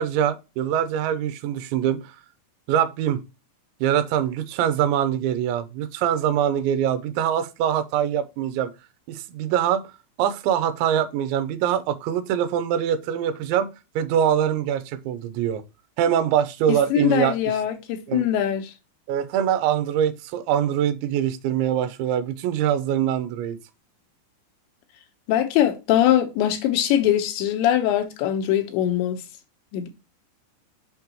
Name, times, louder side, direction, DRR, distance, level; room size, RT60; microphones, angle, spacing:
voice 1, 0.0-2.1 2.7-3.2 3.8-8.7 9.1-9.8 10.2-13.7 14.0-15.6 16.0-17.6 18.1-18.3 19.1-23.6, right 9 dB, 85° right, 3.2 m, -23 dB
voice 2, 16.9-18.7 25.3-29.2 29.7-29.9, left 11 dB, 80° left, 3.3 m, -22 dB
7.3 x 5.9 x 2.9 m
omnidirectional pair, 5.2 m